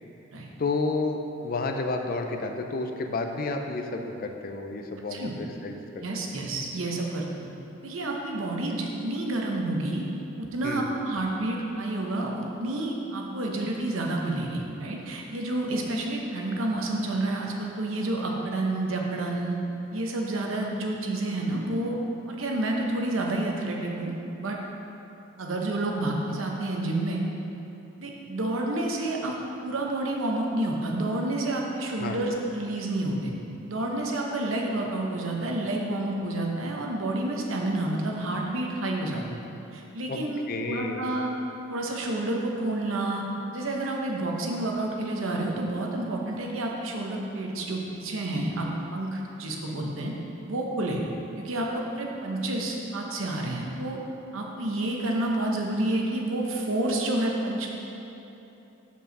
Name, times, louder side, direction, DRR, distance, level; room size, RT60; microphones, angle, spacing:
voice 1, 0.6-6.2 10.6-10.9 32.0-32.2 40.1-40.2 40.5-41.1, left 3 dB, 45° left, 4 dB, 0.4 m, -31 dB
voice 2, 6.0-7.5 7.8-10.1 10.4-19.6 19.9-22.0 22.3-24.1 24.4-24.6 25.4-27.2 28.0-29.3 29.6-33.3 33.7-39.2 39.7-41.3 41.7-43.2 43.5-50.1 50.5-51.0 51.4-54.0 54.3-57.7, right 2 dB, 70° right, 0 dB, 0.9 m, -29 dB
5.5 x 4.7 x 6.1 m, 3.0 s
head